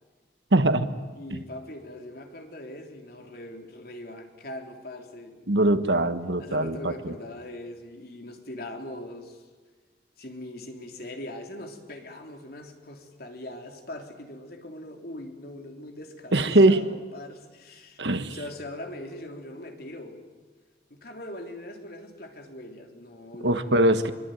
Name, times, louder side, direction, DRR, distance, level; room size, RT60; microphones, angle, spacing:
voice 1, 0.5-0.9 1.3-1.4 5.5-7.1 16.3-16.9 18.0-18.4 23.4-24.1, right 1 dB, 80° right, 10 dB, 1.6 m, -22 dB
voice 2, 1.2-5.5 6.4-9.4 10.2-20.2 20.9-24.0, left 1 dB, 60° left, 3 dB, 3.5 m, -41 dB
25.0 x 23.0 x 9.3 m, 1.3 s
head